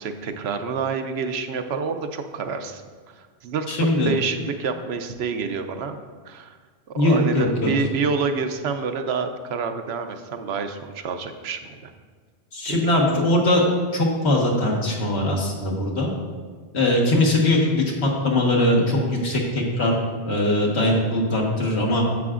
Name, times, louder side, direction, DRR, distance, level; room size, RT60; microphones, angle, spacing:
voice 1, 0.0-2.8 3.2-6.0 6.3-6.6 6.9-11.9 12.7-13.0, right 5 dB, 75° right, 7 dB, 0.8 m, -28 dB
voice 2, 3.7-4.1 6.9-7.7 12.5-16.1 16.7-19.9 20.2-22.0, left 1 dB, 80° left, -1 dB, 1.6 m, -21 dB
9.4 x 7.5 x 2.5 m, 1.5 s
omnidirectional pair, 1.1 m